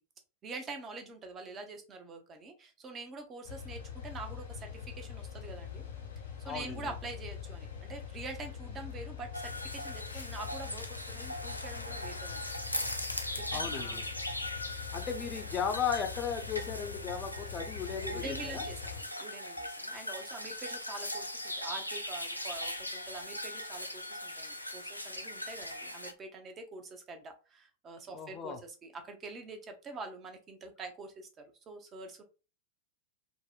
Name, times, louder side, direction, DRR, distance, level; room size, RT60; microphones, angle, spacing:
voice 1, 0.4-5.8 6.4-12.5 13.4-14.2 18.1-32.2, right 3 dB, 25° right, 5 dB, 0.7 m, -45 dB
sound 1, 3.4-19.0, left 8 dB, 70° left, 0.7 m, -44 dB
voice 2, 6.4-6.8 13.5-14.1 14.9-18.7 28.1-28.6, left 7 dB, 25° left, 5 dB, 0.6 m, -36 dB
sound 2, 9.3-26.1, left 1 dB, 90° left, 0.3 m, -39 dB
3.7 x 2.0 x 2.3 m, 0.33 s
figure-of-eight pair, 90°, 0 cm